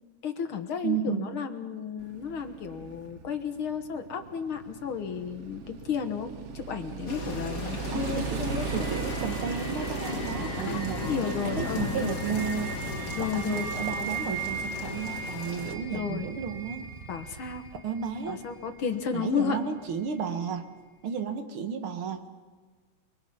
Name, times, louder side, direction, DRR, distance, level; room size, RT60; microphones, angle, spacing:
voice 1, 0.2-8.9 10.7-12.2 13.2-13.7 15.9-16.3 17.1-17.6 18.3-19.6, left 7 dB, 90° left, 7 dB, 2.3 m, -33 dB
voice 2, 0.8-1.4 7.9-8.4 8.7-12.7 13.2-16.9 17.8-18.4 19.1-20.7 21.0-22.2, right 7 dB, 85° right, 7 dB, 2.3 m, -33 dB
Motorcycle, 2.0-17.7, right 8 dB, 60° right, 0.7 m, -39 dB
sound 1, 7.1-15.7, left 4 dB, 45° left, 2.1 m, -36 dB
sound 2, 8.4-19.5 20.1-20.2, right 4 dB, 10° right, 6.1 m, -39 dB
29.5 x 22.0 x 5.6 m, 1.4 s
omnidirectional pair, 2.3 m